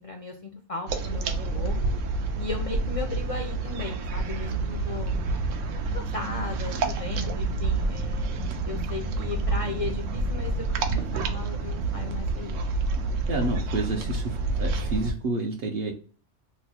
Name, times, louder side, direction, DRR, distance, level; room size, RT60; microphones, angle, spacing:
voice 1, 0.0-1.8 2.4-5.2 5.9-12.6, left 4 dB, 55° left, 3 dB, 0.4 m, -36 dB
sound 1, 0.9-15.1, right 3 dB, 85° right, 0.9 m, -28 dB
voice 2, 13.3-15.9, right 2 dB, 60° right, 2 dB, 0.7 m, -29 dB
3.0 x 2.0 x 4.1 m, 0.42 s
omnidirectional pair, 1.2 m